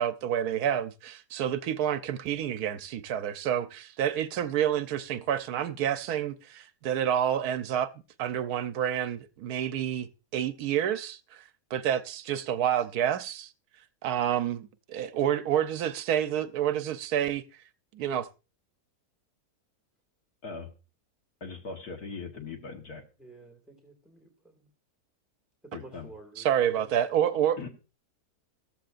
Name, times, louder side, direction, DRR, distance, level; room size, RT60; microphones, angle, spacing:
voice 1, 0.0-7.9 8.2-11.4 11.7-13.5 14.0-17.4 17.9-18.3 26.4-27.6, right 10 dB, 70° right, 1.2 m, -28 dB
voice 2, 21.4-23.0 25.7-26.1 27.6-27.7, left 4 dB, 70° left, 1.9 m, -40 dB
voice 3, 23.2-24.7 25.6-27.3, right 2 dB, ahead, 1.9 m, -52 dB
14.5 x 13.5 x 2.5 m
omnidirectional pair, 1.7 m